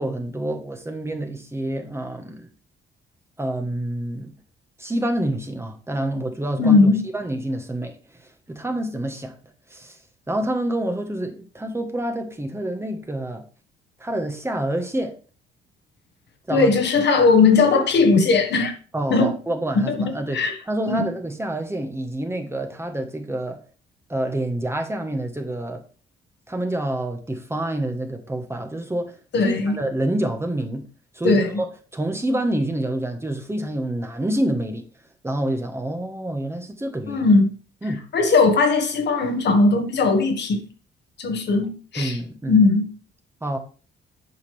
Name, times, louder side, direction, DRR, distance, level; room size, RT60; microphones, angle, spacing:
voice 1, 0.0-2.5 3.4-4.3 4.8-7.9 8.5-9.3 9.7-9.9 10.3-13.4 14.0-15.1 16.5-16.7 18.9-20.4 20.7-23.6 24.1-25.8 26.5-29.1 29.4-30.8 31.1-31.7 31.9-34.8 35.2-37.2 37.8-38.0 42.0-42.6 43.4-43.6, right 1 dB, 15° right, 1.2 m, -27 dB
voice 2, 6.6-7.0 16.5-18.7 19.1-19.3 19.7-20.6 20.9-21.0 29.3-29.8 31.2-31.5 37.1-37.5 38.1-40.6 41.2-42.2 42.5-42.9, left 3 dB, 60° left, 1.5 m, -18 dB
8.2 x 5.1 x 3.4 m
cardioid pair, 90°, 20 cm